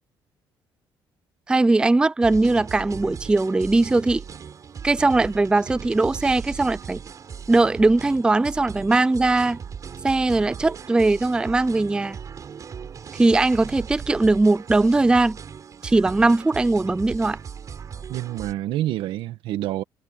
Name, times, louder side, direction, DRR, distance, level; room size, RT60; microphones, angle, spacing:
voice 1, 1.5-4.2 4.8-7.0 7.5-9.6 10.0-12.2 13.1-15.4 15.8-17.4, right 2 dB, 10° right, 0.4 m, -20 dB
sound 1, 2.2-18.5, right 7 dB, 45° right, 4.2 m, -38 dB
voice 2, 18.1-19.8, right 14 dB, 85° right, 1.7 m, -27 dB
cardioid pair, 120°, 8 cm